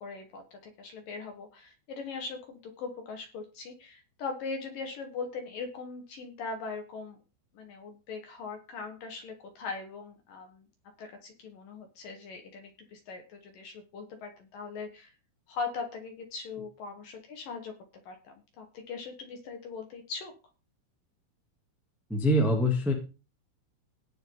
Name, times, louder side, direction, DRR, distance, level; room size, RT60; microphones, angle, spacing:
voice 1, 0.0-7.2 7.5-10.7 11.0-15.1 15.5-17.7 18.1-20.3, left 4 dB, 60° left, 4 dB, 2.5 m, -40 dB
voice 2, 22.1-22.9, equal, ahead, 1 dB, 0.5 m, -24 dB
18.5 x 7.0 x 3.9 m, 0.31 s
omnidirectional pair, 5.9 m